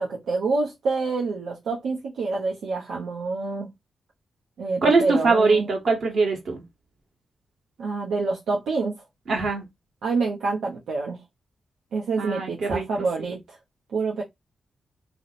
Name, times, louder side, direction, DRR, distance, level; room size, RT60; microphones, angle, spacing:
voice 1, 0.0-3.7 4.6-5.7 7.8-8.9 10.0-11.2 11.9-13.6 13.9-14.2, right 3 dB, 85° right, 0.7 m, -27 dB
voice 2, 4.8-6.6 9.3-9.6 12.2-13.1, right 3 dB, 70° right, 1.5 m, -22 dB
2.8 x 2.0 x 4.0 m
cardioid pair, 70°, 0 cm